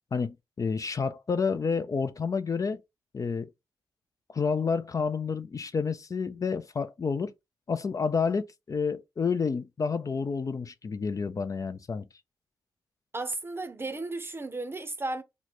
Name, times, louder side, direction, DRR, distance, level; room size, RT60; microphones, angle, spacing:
voice 1, 0.1-2.8 3.1-3.5 4.3-7.3 7.7-12.1, left 5 dB, 40° left, 0.3 m, -29 dB
voice 2, 13.1-15.2, right 2 dB, 25° right, 0.6 m, -34 dB
3.0 x 2.1 x 4.0 m
supercardioid pair, 45°, 9 cm